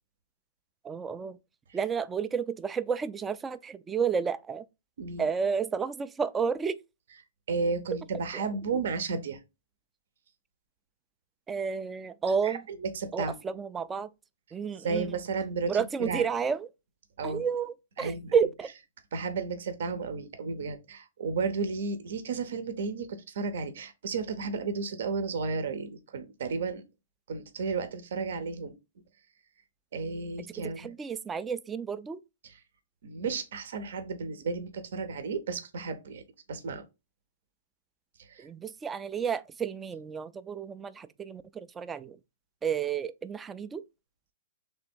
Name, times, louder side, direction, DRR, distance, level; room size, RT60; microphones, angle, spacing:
voice 1, 0.8-1.4 1.7-4.6 5.2-6.8 11.5-12.6 13.1-14.1 14.5-15.1 15.7-16.7 17.2-18.7 30.8-32.2 38.4-42.2 42.6-43.8, right 6 dB, 15° right, 0.3 m, -31 dB
voice 2, 5.0-5.3 7.5-9.4 12.4-13.5 14.8-16.3 17.2-17.4 18.0-18.3 19.1-26.8 27.3-28.7 29.9-30.9 32.4-32.6 33.0-36.8 38.2-38.5, right 4 dB, 70° right, 0.7 m, -33 dB
3.5 x 3.4 x 4.4 m
hypercardioid pair, 150°, 0 cm